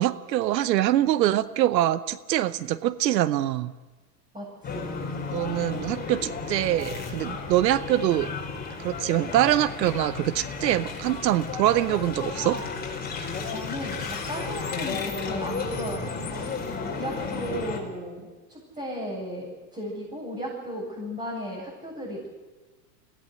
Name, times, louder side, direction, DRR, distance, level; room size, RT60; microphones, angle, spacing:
voice 1, 0.0-3.7 5.3-8.3 8.8-12.6, right 13 dB, 80° right, 16 dB, 0.9 m, -24 dB
voice 2, 4.3-5.0 13.5-22.3, equal, 15° right, -6 dB, 7.8 m, -35 dB
sound 1, 4.6-17.8, left 4 dB, 20° left, 4.8 m, -33 dB
22.0 x 17.5 x 7.9 m, 1.2 s
hypercardioid pair, 105°, 49 cm